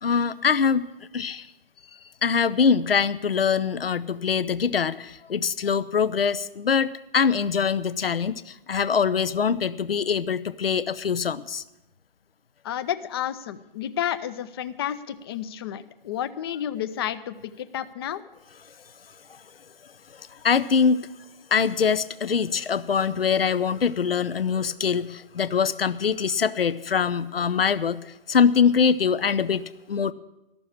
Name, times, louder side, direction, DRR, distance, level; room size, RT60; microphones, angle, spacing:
voice 1, 0.0-0.9 1.1-1.5 2.2-11.6 19.3-19.4 20.1-21.1 21.5-30.1, left 6 dB, 80° left, 14 dB, 0.6 m, -23 dB
voice 2, 12.6-18.2, left 10 dB, 25° left, 13 dB, 0.5 m, -31 dB
13.0 x 7.0 x 9.8 m, 0.93 s
figure-of-eight pair, 130°, 29 cm